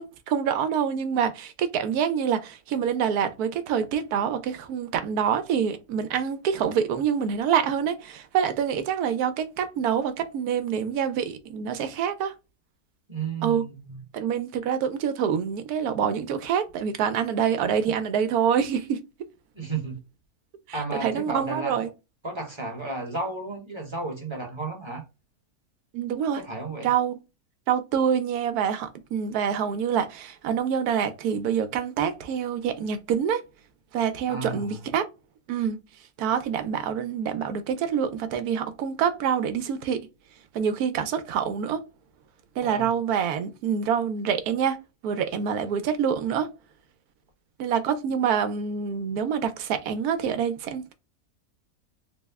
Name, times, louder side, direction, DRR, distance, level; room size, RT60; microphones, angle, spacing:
voice 1, 0.0-12.3 13.4-13.7 14.1-19.0 20.7-21.9 25.9-26.4 26.8-27.2 27.7-33.4 33.9-35.1 35.5-35.8 36.2-40.0 40.5-41.8 42.6-44.8 45.0-46.5 47.6-50.9, right 8 dB, 80° right, 1.1 m, -26 dB
voice 2, 13.1-14.0 19.5-20.0 20.7-21.8 22.2-25.0 26.4-26.9 34.3-34.8 42.6-42.9, right 3 dB, 25° right, 0.8 m, -33 dB
3.5 x 2.1 x 3.4 m
omnidirectional pair, 1.6 m